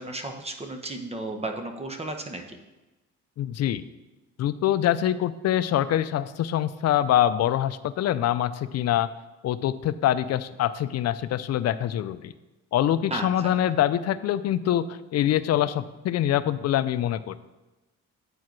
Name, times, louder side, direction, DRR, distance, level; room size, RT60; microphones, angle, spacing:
voice 1, 0.0-2.6 13.1-13.6, right 2 dB, 20° right, 5 dB, 1.0 m, -34 dB
voice 2, 3.4-3.8 4.4-9.1 9.4-12.3 12.7-17.4, left 11 dB, 60° left, 14 dB, 0.5 m, -24 dB
8.5 x 4.7 x 4.6 m, 1.1 s
cardioid pair, 90°, 30 cm